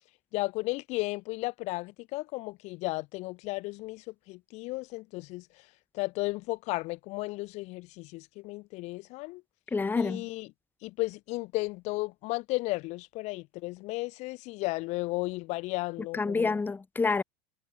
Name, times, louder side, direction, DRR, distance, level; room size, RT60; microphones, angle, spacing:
voice 1, 0.3-9.4 10.0-10.5 10.8-16.6, left 22 dB, 55° left, 7.7 m, -34 dB
voice 2, 9.7-10.2 16.1-17.2, left 4 dB, 15° left, 2.1 m, -28 dB
hypercardioid pair, 110°, 14 cm